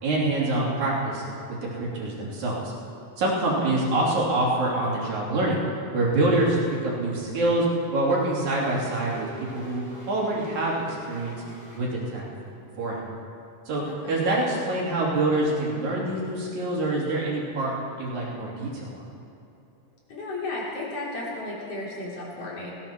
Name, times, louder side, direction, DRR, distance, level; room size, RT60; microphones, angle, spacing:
voice 1, 0.0-1.2 1.7-2.7 3.2-5.6 5.9-7.7 7.9-11.3 11.7-12.2 12.8-13.0 13.7-19.0, right 2 dB, 75° right, -4 dB, 4.5 m, -26 dB
sound 1, 8.5-11.8, left 1 dB, 20° left, 3.5 m, -44 dB
voice 2, 13.9-14.2 20.1-22.7, left 2 dB, 55° left, -5 dB, 4.3 m, -34 dB
18.5 x 16.5 x 4.5 m, 2.8 s
omnidirectional pair, 3.4 m